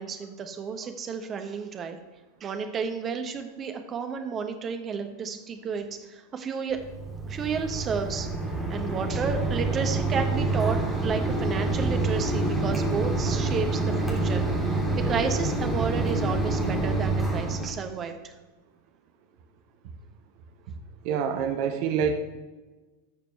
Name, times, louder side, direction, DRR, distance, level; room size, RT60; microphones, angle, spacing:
voice 1, 0.0-2.0 2.4-6.8 7.2-8.3 8.7-18.3, right 6 dB, 25° right, 6 dB, 1.1 m, -32 dB
Mechanisms, 6.7-17.7, right 2 dB, ahead, 3.0 m, -27 dB
voice 2, 21.0-22.2, right 7 dB, 45° right, 7 dB, 0.9 m, -26 dB
17.5 x 6.7 x 3.2 m, 1.3 s
figure-of-eight pair, 90°, 0 cm